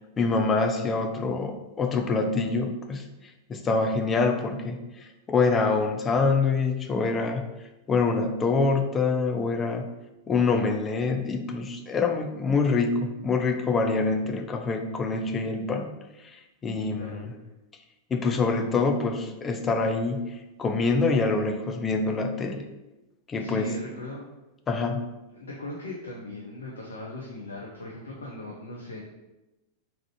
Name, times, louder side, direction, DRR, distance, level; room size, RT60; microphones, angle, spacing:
voice 1, 0.2-3.0 3.5-7.4 7.9-9.9 10.3-15.9 16.2-17.3 18.1-20.2 20.6-22.6 23.3-23.7 24.7-25.0, left 4 dB, 20° left, 5 dB, 0.4 m, -25 dB
voice 2, 23.4-24.3 25.3-29.0, left 1 dB, 70° left, -2 dB, 0.6 m, -39 dB
3.7 x 3.0 x 3.1 m, 1.0 s
figure-of-eight pair, 90°, 0 cm